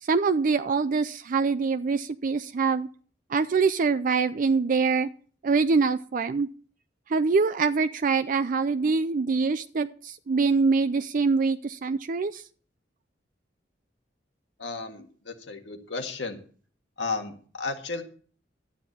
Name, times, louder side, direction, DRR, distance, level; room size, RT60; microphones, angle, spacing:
voice 1, 0.0-2.9 3.3-5.1 5.4-6.5 7.1-12.4, right 4 dB, 50° right, 11 dB, 0.4 m, -24 dB
voice 2, 14.6-16.4 17.0-18.0, left 4 dB, 85° left, 5 dB, 1.8 m, -33 dB
12.0 x 9.2 x 4.2 m, 0.43 s
head